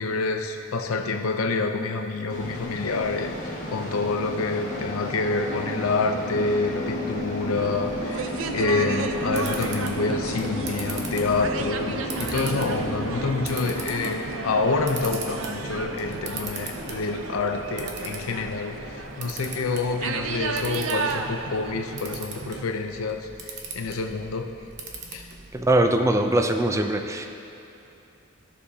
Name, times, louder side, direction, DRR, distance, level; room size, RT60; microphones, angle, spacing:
voice 1, 0.0-3.3 3.7-24.5 25.1-25.3, left 3 dB, 90° left, 6 dB, 0.6 m, -27 dB
sound 1, 2.3-21.8, equal, 40° left, 1.4 m, -34 dB
sound 2, 7.6-22.6, right 4 dB, 70° right, 0.5 m, -34 dB
Camera, 9.1-25.7, right 4 dB, 55° right, 0.9 m, -41 dB
voice 2, 25.5-27.3, right 1 dB, 15° right, 6 dB, 0.4 m, -22 dB
14.0 x 6.6 x 2.8 m, 2.9 s
head